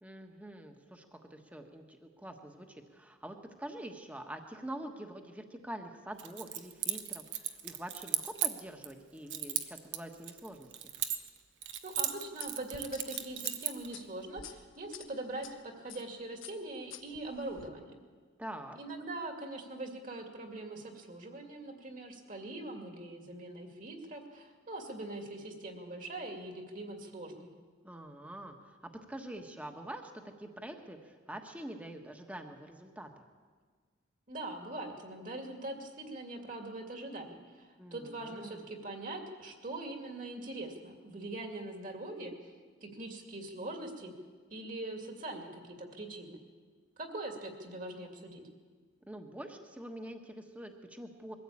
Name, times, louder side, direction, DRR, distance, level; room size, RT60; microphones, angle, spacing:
voice 1, 0.0-10.7 18.4-18.8 27.8-33.2 37.8-38.6 49.1-51.4, right 1 dB, 5° right, 4 dB, 1.3 m, -45 dB
Keys jangling, 6.2-8.9 9.3-11.4 11.6-13.9, right 11 dB, 70° right, 1.1 m, -35 dB
voice 2, 11.8-17.9 18.7-27.5 34.3-42.3 42.8-44.1 44.5-46.4 47.0-48.4, right 2 dB, 40° right, 4 dB, 2.4 m, -42 dB
sound 1, 12.4-15.5 15.9-16.1 16.4-17.7, left 9 dB, 85° left, 1.3 m, -50 dB
22.0 x 14.0 x 8.6 m, 1.5 s
head